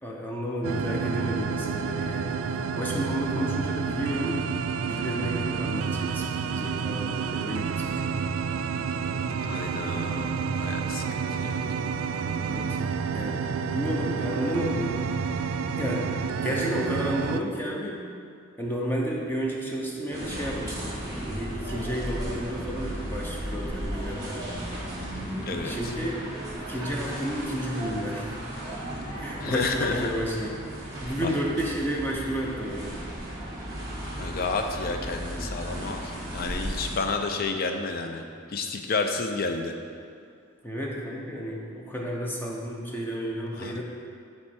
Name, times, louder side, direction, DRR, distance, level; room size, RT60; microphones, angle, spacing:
voice 1, 0.0-2.4 2.7-4.5 4.7-8.2 12.4-12.8 13.1-13.4 13.6-15.0 15.7-16.1 16.4-18.0 18.6-24.5 25.6-26.2 26.6-28.4 29.2-33.0 40.6-43.8, equal, 10° left, -3 dB, 0.7 m, -32 dB
sound 1, 0.6-17.4, right 6 dB, 70° right, 0.3 m, -29 dB
voice 2, 9.4-11.6 25.5-25.8 29.4-30.1 31.2-31.3 34.2-38.2 38.5-39.7 43.6-43.8, left 4 dB, 45° left, 5 dB, 0.4 m, -30 dB
sound 2, 20.1-36.9, right 1 dB, 20° right, 1.8 m, -35 dB
7.6 x 4.5 x 4.3 m, 2.3 s
head